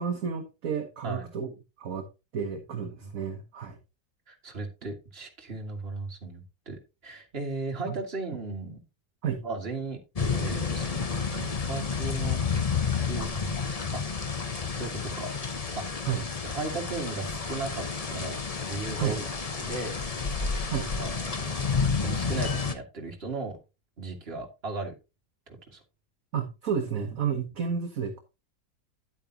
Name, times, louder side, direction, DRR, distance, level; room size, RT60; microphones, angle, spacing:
voice 1, 0.0-1.5 1.8-2.1 2.3-3.8 7.9-8.0 9.2-9.4 16.0-16.2 19.0-19.2 20.7-20.9 26.3-28.2, right 7 dB, 55° right, 1.4 m, -31 dB
voice 2, 4.3-8.8 9.4-10.0 10.4-12.4 13.0-13.3 13.7-14.0 14.7-15.4 15.8-15.9 16.4-19.3 19.6-20.4 21.0-23.6 24.0-24.9 25.5-25.8, right 3 dB, 35° right, 2.0 m, -37 dB
sound 1, 10.2-22.7, left 5 dB, 30° left, 0.7 m, -30 dB
10.0 x 8.7 x 2.8 m
omnidirectional pair, 1.9 m